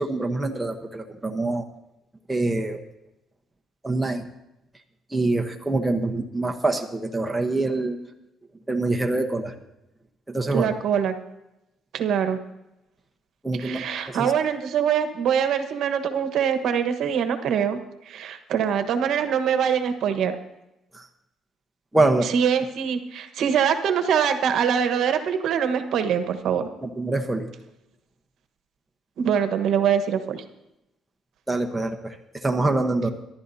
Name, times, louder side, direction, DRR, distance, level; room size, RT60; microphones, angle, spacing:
voice 1, 0.0-1.6 2.3-2.8 3.8-4.2 5.1-8.0 8.7-9.5 10.3-10.7 13.4-14.3 20.9-21.0 21.9-22.3 26.8-27.5 31.5-32.1 32.4-33.1, right 2 dB, 10° right, 3 dB, 1.1 m, -25 dB
voice 2, 10.5-11.1 11.9-12.4 13.6-17.8 18.1-20.3 22.2-26.7 29.2-30.4, right 8 dB, 70° right, 8 dB, 1.3 m, -23 dB
24.0 x 12.0 x 2.8 m, 0.90 s
cardioid pair, 120°, 0 cm